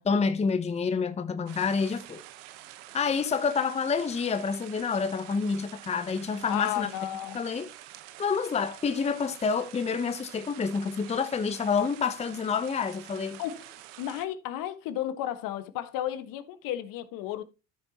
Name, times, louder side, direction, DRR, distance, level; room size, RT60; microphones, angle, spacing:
voice 1, 0.1-2.2 2.9-6.9 7.3-7.7 8.2-13.4, left 5 dB, 15° left, 0.8 m, -28 dB
sound 1, 1.5-14.3, right 14 dB, 70° right, 1.1 m, -48 dB
voice 2, 6.5-7.5 13.4-17.4, left 12 dB, 60° left, 1.4 m, -33 dB
13.0 x 7.0 x 2.9 m
hypercardioid pair, 80°, 38 cm